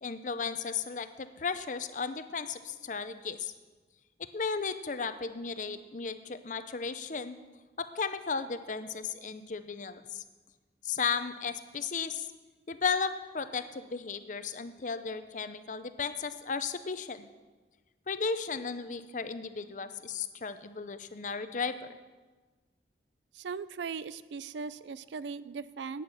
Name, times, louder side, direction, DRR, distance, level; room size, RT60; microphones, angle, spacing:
voice 1, 0.0-3.5 4.3-7.4 7.8-10.2 10.8-12.3 12.7-17.3 18.1-21.9, left 5 dB, 45° left, 11 dB, 0.6 m, -35 dB
voice 2, 23.3-26.0, right 5 dB, 80° right, 16 dB, 0.4 m, -39 dB
11.5 x 9.3 x 6.3 m, 1.3 s
head